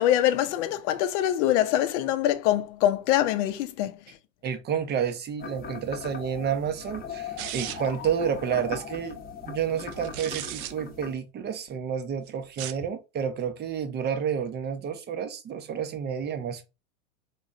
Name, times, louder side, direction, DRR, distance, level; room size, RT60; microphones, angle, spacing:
voice 1, 0.0-4.0, left 12 dB, 55° left, 0.7 m, -24 dB
voice 2, 4.4-9.2 9.4-16.6, right 7 dB, 25° right, 0.6 m, -30 dB
sound 1, 5.4-11.1, left 6 dB, 20° left, 0.8 m, -39 dB
sound 2, 7.4-8.0 9.9-10.7 12.4-12.9, right 12 dB, 75° right, 0.6 m, -36 dB
3.9 x 3.0 x 2.4 m
hypercardioid pair, 110°, 43 cm